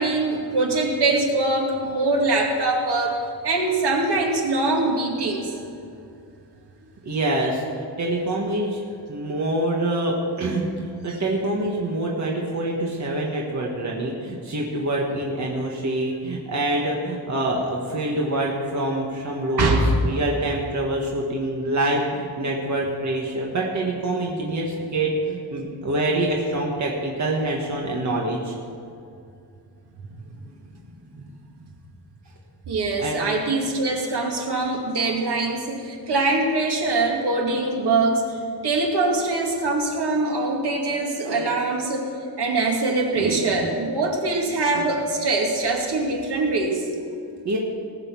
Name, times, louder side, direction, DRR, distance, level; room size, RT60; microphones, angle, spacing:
voice 1, 0.0-3.2 3.4-5.5 14.2-14.4 19.6-19.9 30.9-31.3 32.7-38.2 38.6-42.1 42.4-46.9, right 2 dB, 70° right, 0 dB, 2.4 m, -23 dB
voice 2, 7.0-8.8 9.1-28.5 33.0-33.2 47.4-47.6, right 1 dB, 45° right, -2 dB, 1.6 m, -25 dB
19.5 x 7.0 x 7.0 m, 2.4 s
wide cardioid pair, 180°, 41 cm